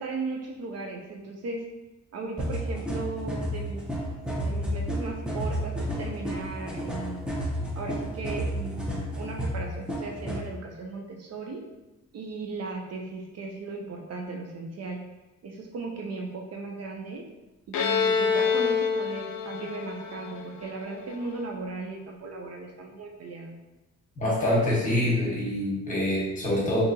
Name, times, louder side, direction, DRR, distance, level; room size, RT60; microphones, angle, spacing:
voice 1, 0.0-1.7 2.1-3.8 4.4-7.2 7.8-11.6 12.1-15.0 15.4-17.3 17.7-23.6, right 3 dB, 55° right, 1 dB, 0.5 m, -36 dB
sound 1, 2.4-10.4, equal, 5° right, 0.5 m, -31 dB
Bowed string instrument, 17.7-21.3, left 6 dB, 75° left, 0.5 m, -27 dB
voice 2, 24.2-26.9, left 1 dB, 25° left, -6 dB, 1.1 m, -25 dB
3.6 x 2.8 x 2.7 m, 1.0 s
wide cardioid pair, 155°, 30 cm